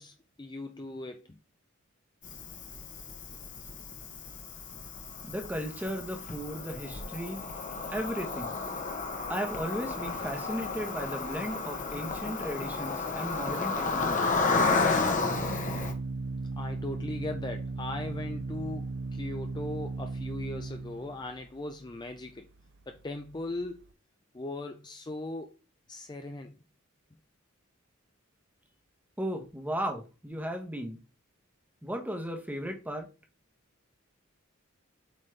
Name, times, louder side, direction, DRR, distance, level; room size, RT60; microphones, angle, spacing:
voice 1, 0.0-1.4 16.6-22.5 22.9-23.8 24.3-25.5 25.9-26.6, left 2 dB, 20° left, 0.5 m, -39 dB
Cricket, 2.2-15.9, left 4 dB, 40° left, 1.1 m, -32 dB
voice 2, 5.2-7.4 7.9-8.6 9.3-14.3 29.2-31.0 31.8-33.1, equal, 10° right, 1.1 m, -35 dB
Organ, 13.7-23.9, right 3 dB, 60° right, 0.5 m, -38 dB
7.5 x 4.1 x 3.3 m
head